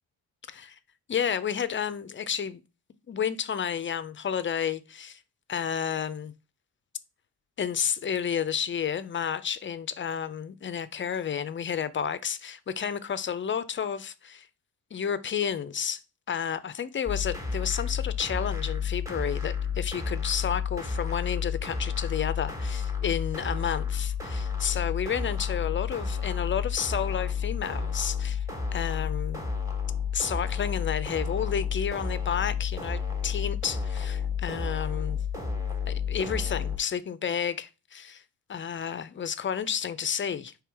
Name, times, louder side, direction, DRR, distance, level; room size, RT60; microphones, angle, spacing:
voice 1, 1.1-2.6 3.1-5.2 5.5-6.3 7.6-14.5 14.9-16.0 16.3-28.4 28.7-29.4 30.1-35.2 35.9-38.2 38.5-40.5, left 8 dB, 35° left, 0.5 m, -31 dB
sound 1, 17.1-36.8, left 6 dB, 10° right, 1.3 m, -31 dB
4.6 x 3.3 x 3.4 m
cardioid pair, 85°, 37 cm